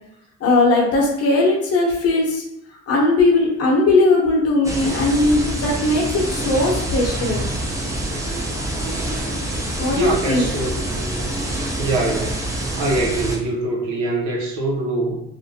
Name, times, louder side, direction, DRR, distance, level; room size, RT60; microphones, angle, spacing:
voice 1, 0.4-2.4 2.9-7.4 9.8-10.5 11.2-11.3, left 2 dB, 50° left, -2 dB, 0.8 m, -18 dB
sound 1, 4.6-13.4, right 1 dB, 10° right, 0.5 m, -26 dB
voice 2, 9.9-11.2 11.8-12.4 12.8-15.2, right 2 dB, 90° right, -3 dB, 0.7 m, -24 dB
2.4 x 2.0 x 2.7 m, 0.81 s
cardioid pair, 90°, 30 cm